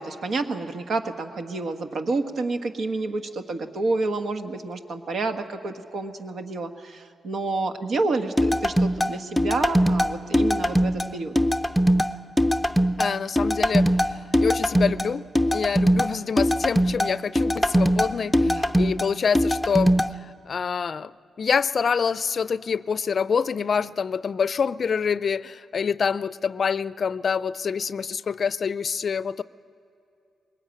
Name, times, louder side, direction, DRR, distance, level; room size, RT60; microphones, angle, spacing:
voice 1, 0.0-11.3 18.4-18.8, right 3 dB, 65° right, 7 dB, 1.4 m, -29 dB
sound 1, 8.4-20.1, equal, 5° left, 0.7 m, -21 dB
voice 2, 13.0-13.8 14.4-15.2 15.5-19.9 20.2-21.1 21.4-29.4, left 6 dB, 55° left, 17 dB, 0.5 m, -26 dB
21.5 x 18.5 x 9.1 m, 2.6 s
cardioid pair, 85°, 0 cm